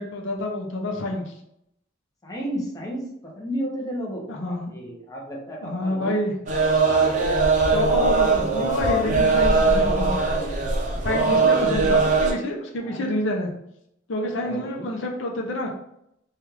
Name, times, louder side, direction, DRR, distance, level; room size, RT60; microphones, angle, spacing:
voice 1, 0.0-1.3 4.3-4.7 5.6-6.3 7.7-10.1 11.0-13.5 14.1-15.7, left 1 dB, 65° left, 0 dB, 0.6 m, -28 dB
voice 2, 2.2-6.2 11.2-11.5 12.7-13.1 14.4-14.9, equal, 20° left, -3 dB, 0.7 m, -33 dB
sound 1, 6.5-12.3, right 3 dB, 40° right, 0.5 m, -20 dB
3.4 x 2.3 x 3.0 m, 0.77 s
head